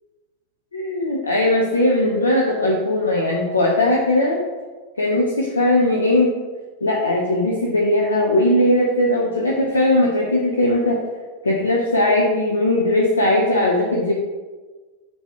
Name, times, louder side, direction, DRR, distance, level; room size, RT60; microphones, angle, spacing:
voice 1, 0.7-4.4 5.0-6.3 6.8-11.0 11.4-14.1, left 1 dB, 75° left, -2 dB, 0.5 m, -19 dB
4.3 x 2.7 x 3.5 m, 1.3 s
figure-of-eight pair, 90°, 0 cm